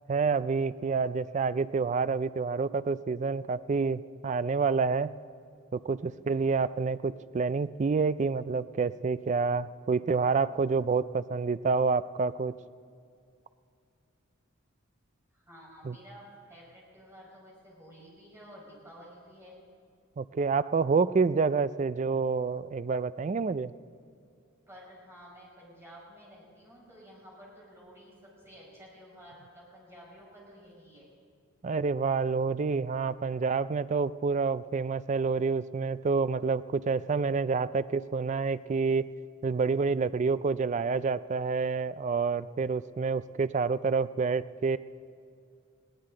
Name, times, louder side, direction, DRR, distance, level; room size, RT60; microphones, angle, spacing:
voice 1, 0.1-5.1 5.7-12.5 15.9-16.0 20.2-23.7 31.6-39.1 39.4-44.8, right 4 dB, 35° right, 15 dB, 0.3 m, -28 dB
voice 2, 6.2-6.6 15.3-19.7 24.7-31.1, equal, 10° right, -4 dB, 5.0 m, -52 dB
20.5 x 17.0 x 3.8 m, 2.4 s
head